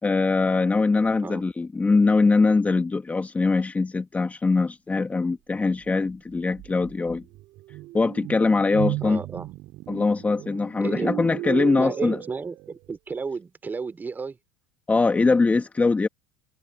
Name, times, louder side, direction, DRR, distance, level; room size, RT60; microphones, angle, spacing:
voice 1, 0.0-7.2 7.9-9.2 9.9-12.2 14.9-16.1, left 3 dB, 15° left, 2.3 m, -22 dB
sound 1, 6.1-6.2 6.6-12.7, right 18 dB, 55° right, 6.7 m, -35 dB
voice 2, 9.0-9.5 10.8-11.1 11.8-14.4, right 4 dB, 20° right, 3.7 m, -32 dB
hypercardioid pair, 75°, 9 cm